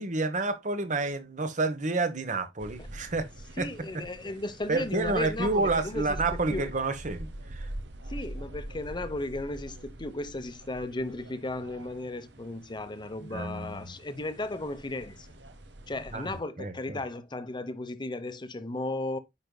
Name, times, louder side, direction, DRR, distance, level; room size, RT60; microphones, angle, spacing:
voice 1, 0.0-3.3 3.6-3.7 3.9-4.0 4.7-7.7 13.3-13.9 16.1-17.0, right 3 dB, 45° right, 1.1 m, -29 dB
sound 1, 2.6-16.4, right 1 dB, 80° right, 0.9 m, -44 dB
voice 2, 3.6-6.7 8.1-15.3 15.9-19.2, left 2 dB, 25° left, 0.9 m, -35 dB
9.6 x 5.3 x 2.2 m
head